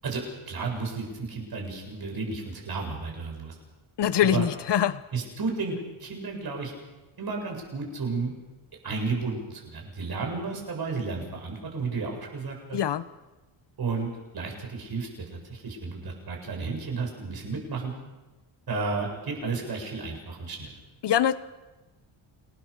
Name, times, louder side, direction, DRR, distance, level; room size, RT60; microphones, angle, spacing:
voice 1, 0.0-3.5 4.3-4.4 5.1-6.7 7.2-8.3 8.8-12.8 13.8-15.1 15.5-17.9 18.7-20.7, right 4 dB, 50° right, 1 dB, 7.9 m, -32 dB
voice 2, 4.0-5.0 12.7-13.0 21.0-21.4, left 10 dB, 55° left, 14 dB, 1.3 m, -23 dB
29.0 x 19.5 x 6.8 m, 1.1 s
cardioid pair, 115°, 48 cm